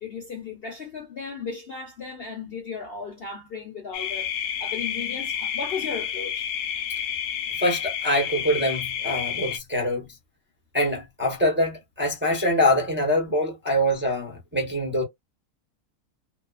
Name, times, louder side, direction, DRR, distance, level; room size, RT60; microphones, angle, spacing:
voice 1, 0.0-4.3 4.6-6.5, left 5 dB, 50° left, 0.8 m, -35 dB
sound 1, 3.9-9.6, left 8 dB, 75° left, 1.0 m, -30 dB
voice 2, 7.6-10.0 10.7-15.0, left 1 dB, 10° right, 0.7 m, -24 dB
2.8 x 2.2 x 2.3 m
omnidirectional pair, 1.6 m